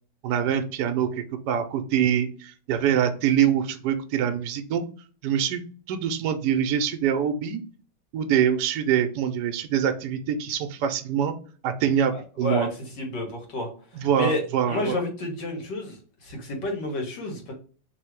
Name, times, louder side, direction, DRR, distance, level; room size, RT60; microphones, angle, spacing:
voice 1, 0.2-4.8 5.2-5.6 5.9-7.6 8.1-11.3 11.6-12.7 13.9-15.0, right 9 dB, 75° right, 7 dB, 1.1 m, -24 dB
voice 2, 13.0-13.7 14.0-14.4 14.7-17.5, left 2 dB, 75° left, 2 dB, 1.8 m, -30 dB
3.4 x 2.7 x 4.5 m, 0.39 s
omnidirectional pair, 1.9 m